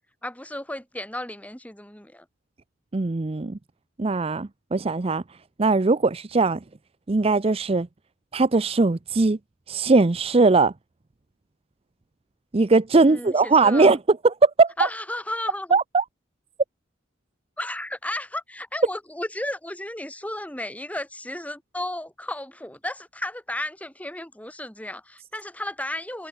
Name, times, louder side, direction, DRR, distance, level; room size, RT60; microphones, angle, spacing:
voice 1, 0.2-2.3 13.0-13.9 14.8-15.8 17.6-26.3, left 1 dB, 10° left, 3.7 m, -33 dB
voice 2, 2.9-3.6 4.0-5.2 5.6-6.6 7.1-7.9 8.3-9.4 9.7-10.7 12.5-14.0 14.2-14.7 15.7-16.0, right 3 dB, 30° right, 0.5 m, -20 dB
head